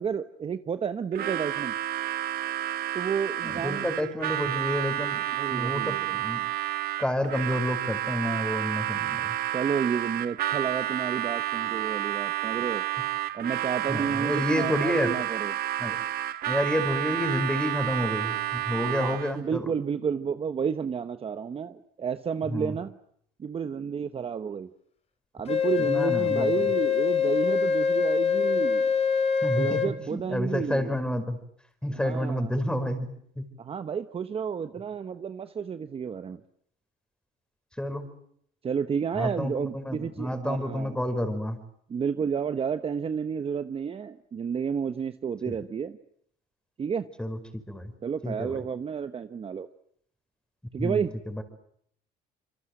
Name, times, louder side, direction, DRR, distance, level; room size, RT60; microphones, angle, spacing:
voice 1, 0.0-1.7 2.9-3.9 5.4-6.1 9.5-12.8 13.3-15.5 18.8-23.0 23.4-24.7 25.3-28.9 29.5-30.9 31.9-32.5 33.6-36.4 38.6-41.0 41.9-46.0 46.8-47.1 48.0-49.7 50.7-51.1, right 7 dB, 30° right, 10 dB, 1.1 m, -31 dB
Harmonica, 1.1-19.4, right 13 dB, 55° right, 1.1 m, -30 dB
voice 2, 3.4-5.2 5.5-6.4 7.0-9.3 13.9-15.1 15.8-16.0 16.5-19.7 22.5-22.7 25.8-26.7 29.4-31.4 31.8-33.5 37.8-38.1 39.1-41.6 45.5-45.6 47.2-47.9 48.2-48.6 50.8-51.4, equal, 5° left, 9 dB, 5.1 m, -29 dB
Wind instrument woodwind instrument, 25.5-29.9, left 6 dB, 35° left, 2.9 m, -24 dB
27.0 x 24.5 x 7.9 m, 0.68 s
supercardioid pair, 100°, 18 cm